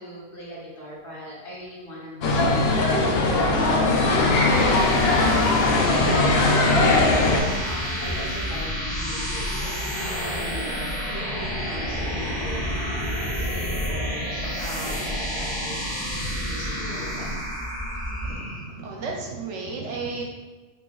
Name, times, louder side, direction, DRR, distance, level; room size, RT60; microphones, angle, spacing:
voice 1, 0.0-5.0 5.9-15.8 16.4-17.2, equal, 45° left, -7 dB, 1.2 m, -39 dB
sound 1, 2.2-7.4, left 2 dB, 60° left, 0.7 m, -20 dB
sound 2, 4.2-18.7, equal, 20° left, 1.3 m, -29 dB
voice 2, 18.2-20.2, right 4 dB, 70° right, 0 dB, 0.8 m, -33 dB
5.3 x 2.9 x 2.3 m, 1.2 s
omnidirectional pair, 1.4 m